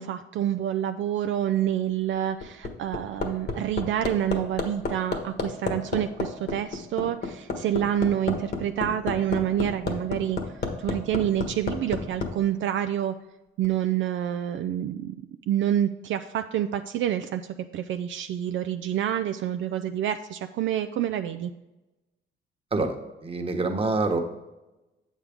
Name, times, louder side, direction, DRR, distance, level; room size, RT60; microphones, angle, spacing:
voice 1, 0.0-10.4 10.8-13.1 13.6-15.1 15.5-17.4 17.7-21.5, right 11 dB, 70° right, 8 dB, 0.4 m, -27 dB
Hammer, 2.2-12.3 13.6-13.7, left 4 dB, 55° left, 1.5 m, -30 dB
voice 2, 23.2-24.2, right 3 dB, 30° right, 4 dB, 1.2 m, -25 dB
8.1 x 7.3 x 3.5 m, 1.0 s
cardioid pair, 90°, 20 cm